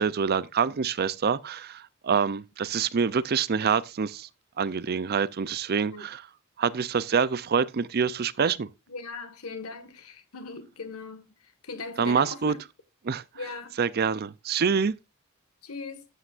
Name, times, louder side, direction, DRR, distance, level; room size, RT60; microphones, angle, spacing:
voice 1, 0.0-4.3 4.6-6.3 6.6-8.7 12.0-12.5 13.0-13.2 13.8-15.0, right 6 dB, 45° right, 0.5 m, -26 dB
voice 2, 8.9-11.3 11.6-12.6 13.3-13.8 15.6-16.1, left 3 dB, 85° left, 1.7 m, -39 dB
13.0 x 8.5 x 2.5 m
head